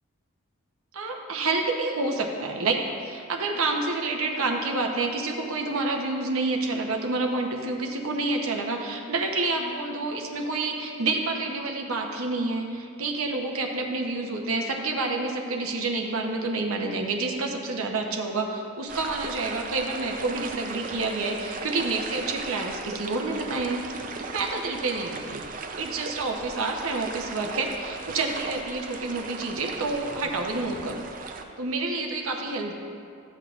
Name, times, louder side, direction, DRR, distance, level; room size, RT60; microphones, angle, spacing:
voice 1, 0.9-23.8 24.3-25.4 25.8-31.0 31.6-32.7, right 3 dB, 80° right, 2 dB, 0.9 m, -28 dB
sound 1, 18.9-31.4, right 4 dB, 40° right, 0.4 m, -37 dB
13.5 x 8.0 x 2.5 m, 2.4 s
head